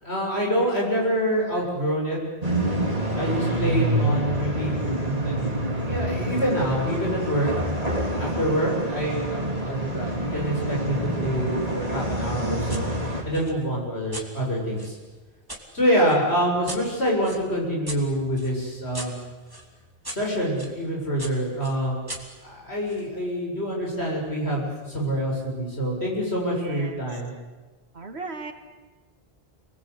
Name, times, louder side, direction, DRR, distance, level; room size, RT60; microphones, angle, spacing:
voice 1, 0.0-2.2 3.1-5.4 5.8-7.5 8.2-12.9 13.2-15.0 15.7-19.3 20.1-22.0 22.4-27.3, equal, 80° left, -2 dB, 7.6 m, -26 dB
sound 1, 2.4-13.2, right 1 dB, 35° right, 4.7 m, -27 dB
sound 2, 12.7-12.9 13.3-15.6 16.1-20.8 21.2-23.1, right 1 dB, 20° right, 3.0 m, -40 dB
voice 2, 26.5-27.1 27.9-28.5, right 3 dB, 80° right, 6 dB, 2.4 m, -36 dB
28.0 x 21.0 x 8.3 m, 1.3 s
omnidirectional pair, 1.1 m